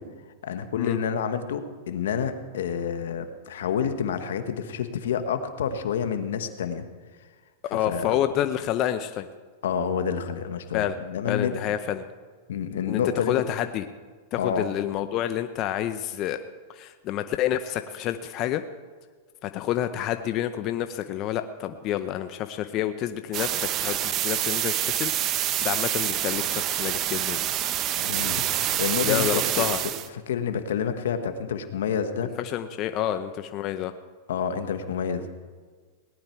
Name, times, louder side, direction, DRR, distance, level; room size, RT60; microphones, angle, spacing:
voice 1, 0.4-6.8 7.9-8.2 9.6-11.5 12.5-13.3 14.4-14.7 28.0-29.7 30.3-32.3 34.3-35.3, left 7 dB, 80° left, 9 dB, 1.2 m, -28 dB
voice 2, 7.7-9.3 10.7-10.9 11.3-12.0 12.9-13.0 13.3-13.9 14.3-16.4 16.7-18.6 19.4-27.5 29.0-29.8 32.4-33.9, left 11 dB, 40° left, 9 dB, 0.6 m, -28 dB
sound 1, 23.3-30.1, right 12 dB, 35° right, 0.6 m, -27 dB
18.5 x 10.5 x 4.5 m, 1.5 s
hypercardioid pair, 130°, 0 cm